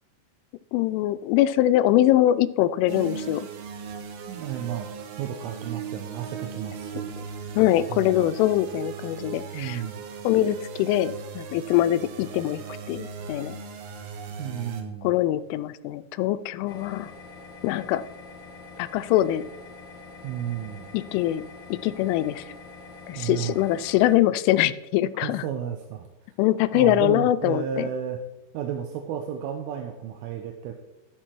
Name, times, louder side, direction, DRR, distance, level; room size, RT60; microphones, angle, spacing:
voice 1, 0.7-3.5 7.6-9.8 10.2-13.6 15.0-17.1 17.6-18.0 18.8-19.5 20.9-22.5 23.1-25.4 26.4-27.9, left 13 dB, 85° left, 13 dB, 3.0 m, -23 dB
sound 1, 2.9-14.8, right 5 dB, 75° right, 2.5 m, -38 dB
voice 2, 4.3-4.9 5.2-7.2 7.9-8.4 9.5-10.0 14.4-15.1 20.2-21.0 23.2-23.6 25.2-26.1 26.7-28.2 28.5-30.7, right 9 dB, 90° right, 4 dB, 3.3 m, -33 dB
sound 2, 16.7-24.2, left 3 dB, 50° left, 1.8 m, -45 dB
13.5 x 6.7 x 4.5 m, 0.96 s
omnidirectional pair, 5.6 m